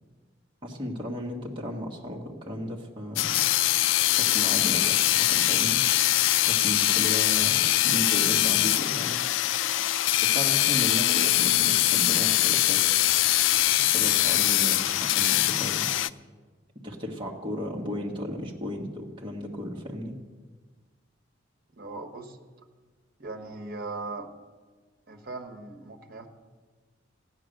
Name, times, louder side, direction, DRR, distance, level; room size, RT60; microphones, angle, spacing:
voice 1, 0.6-3.4 4.1-5.8 6.4-9.2 10.2-12.8 13.8-15.9 16.8-20.2, equal, 25° right, -1 dB, 1.4 m, -35 dB
sound 1, 3.2-16.1, left 14 dB, 90° left, 0.3 m, -23 dB
voice 2, 21.7-22.4 23.2-24.3 25.1-26.3, right 3 dB, 50° right, 3 dB, 1.4 m, -38 dB
14.5 x 9.2 x 6.5 m, 1.4 s
head